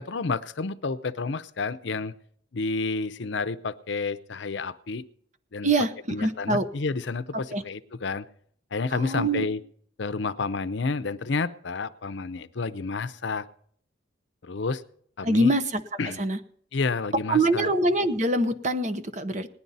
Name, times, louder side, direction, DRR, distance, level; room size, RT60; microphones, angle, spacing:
voice 1, 0.0-2.1 2.5-5.1 5.5-5.7 6.1-8.3 8.7-9.6 10.0-13.5 14.4-14.8 15.2-15.5 16.0-16.2 16.7-17.7, left 4 dB, 70° left, 13 dB, 0.6 m, -30 dB
voice 2, 5.6-6.6 7.5-7.6 8.9-9.5 15.2-15.8 16.2-16.4 17.3-19.5, right 1 dB, 40° right, 11 dB, 0.8 m, -24 dB
19.0 x 10.5 x 4.0 m, 0.62 s
head